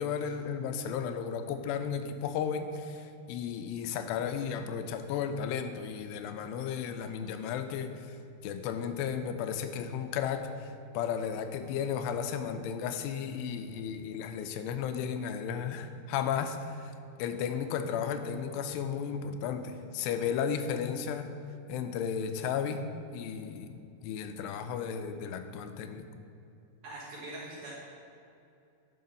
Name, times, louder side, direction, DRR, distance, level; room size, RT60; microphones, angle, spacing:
voice 1, 0.0-8.2 8.4-21.3 21.7-26.1, left 7 dB, 90° left, 8 dB, 2.7 m, -34 dB
voice 2, 26.8-27.7, right 2 dB, 65° right, -5 dB, 1.9 m, -42 dB
9.4 x 5.7 x 5.5 m, 2.7 s
omnidirectional pair, 4.8 m